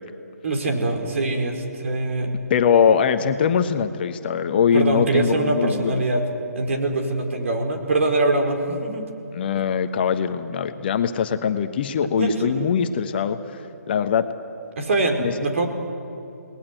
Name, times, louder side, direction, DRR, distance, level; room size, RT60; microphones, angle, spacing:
voice 1, 0.4-2.3 4.7-6.3 6.5-9.0 12.2-12.6 14.8-15.7, right 2 dB, 50° right, 4 dB, 4.2 m, -23 dB
voice 2, 2.5-6.0 9.3-14.3 15.2-15.3, left 7 dB, 35° left, 9 dB, 1.2 m, -22 dB
29.0 x 19.5 x 9.0 m, 2.9 s
figure-of-eight pair, 140°, 9 cm